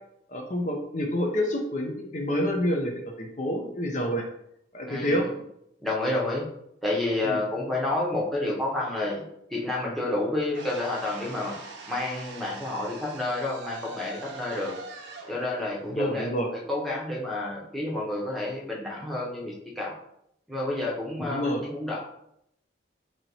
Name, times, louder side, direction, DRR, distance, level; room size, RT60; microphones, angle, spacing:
voice 1, 0.3-4.2 4.7-5.3 7.2-7.4 15.9-16.5 21.3-21.6, equal, 40° left, 2 dB, 0.5 m, -28 dB
voice 2, 5.8-6.4 6.8-9.2 9.5-11.5 11.9-14.7 15.3-19.9 20.5-21.4 21.7-22.0, left 2 dB, ahead, -3 dB, 0.9 m, -29 dB
sound 1, 10.5-16.6, right 3 dB, 80° right, 0.7 m, -43 dB
3.1 x 2.8 x 4.1 m, 0.76 s
head